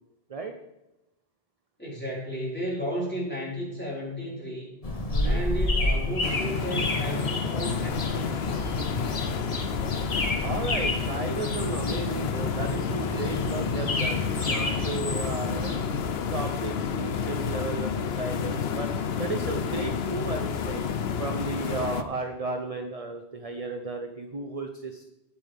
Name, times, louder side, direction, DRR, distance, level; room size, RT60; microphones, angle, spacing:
voice 1, 1.8-4.7 5.2-8.8, equal, 10° left, -6 dB, 5.2 m, -34 dB
sound 1, 4.8-16.0, left 1 dB, 35° left, 1.1 m, -30 dB
voice 2, 5.1-5.4 10.4-15.7 16.3-18.9 19.2-20.9 21.2-25.0, right 3 dB, 35° right, 5 dB, 0.9 m, -34 dB
sound 2, 6.2-22.0, left 7 dB, 70° left, 1.0 m, -30 dB
19.0 x 8.2 x 3.6 m, 0.94 s
omnidirectional pair, 1.1 m